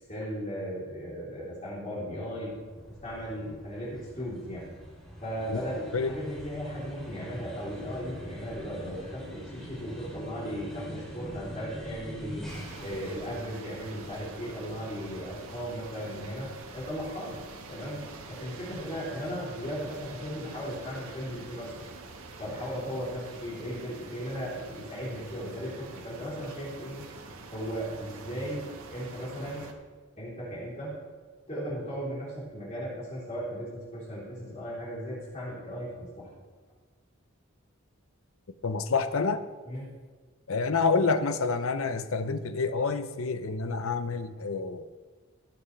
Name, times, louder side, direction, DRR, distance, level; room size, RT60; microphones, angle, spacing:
voice 1, 0.1-2.5 2.9-4.7 5.2-12.5 12.8-17.4 17.7-21.8 22.4-27.0 27.5-29.7 30.2-31.0 31.5-36.3 39.6-39.9, equal, 30° left, -8 dB, 3.7 m, -36 dB
sound 1, 2.3-16.8, equal, 5° left, 2.6 m, -45 dB
sound 2, 12.5-29.7, right 3 dB, 80° right, 1.3 m, -46 dB
voice 2, 38.6-39.4 40.5-44.9, left 4 dB, 70° left, 11 dB, 0.7 m, -28 dB
18.0 x 8.0 x 3.4 m, 1.4 s
head